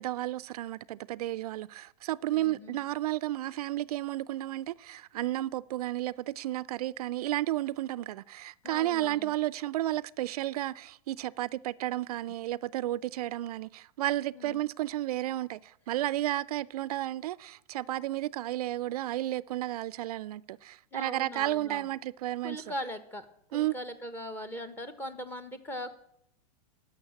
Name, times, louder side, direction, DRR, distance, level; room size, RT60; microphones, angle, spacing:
voice 1, 0.0-22.6 23.5-23.8, right 15 dB, 70° right, 0.4 m, -32 dB
voice 2, 2.3-2.8 8.6-9.3 14.3-14.6 20.9-21.9 22.4-23.3 23.5-26.0, equal, 10° left, 1.0 m, -40 dB
12.0 x 6.5 x 9.6 m
hypercardioid pair, 145°, 20 cm